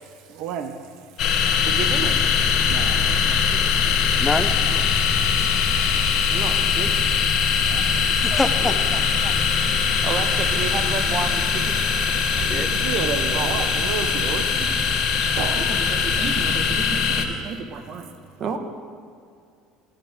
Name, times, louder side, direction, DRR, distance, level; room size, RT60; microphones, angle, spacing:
voice 1, 0.1-1.7 2.6-4.2 4.9-8.4 9.2-10.0 12.4-14.7 15.1-15.9 16.9-17.1 17.4-17.5, right 6 dB, 70° right, 0.7 m, -35 dB
sound 1, 1.2-17.3, left 7 dB, 60° left, 1.0 m, -22 dB
voice 2, 1.6-2.2 4.7-4.8 6.3-7.2 10.0-11.8 12.3-13.6 14.6-14.8 15.5-18.1 18.4-18.6, right 5 dB, 50° right, 1.1 m, -32 dB
sound 2, 1.7-16.7, right 1 dB, 5° right, 1.4 m, -34 dB
voice 3, 4.2-4.5 8.2-9.3 12.5-12.7, left 2 dB, 10° left, 0.6 m, -26 dB
11.0 x 10.5 x 3.6 m
supercardioid pair, 90°, 0 cm